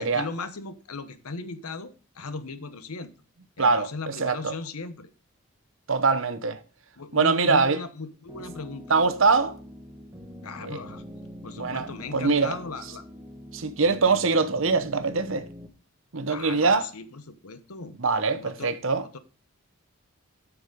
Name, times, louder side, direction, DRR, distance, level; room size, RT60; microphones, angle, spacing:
voice 1, 0.0-3.1 3.6-5.1 7.0-8.9 10.4-11.0 11.4-13.0 16.3-18.0 18.4-18.7 19.1-19.2, left 3 dB, 85° left, 0.9 m, -37 dB
voice 2, 3.6-4.5 5.9-6.6 7.1-7.8 8.9-9.6 10.6-10.8 11.6-12.5 13.5-15.5 16.1-16.9 18.0-19.0, right 4 dB, 60° right, 0.8 m, -23 dB
sound 1, 8.3-15.7, equal, 15° right, 1.1 m, -44 dB
8.2 x 6.2 x 5.2 m
head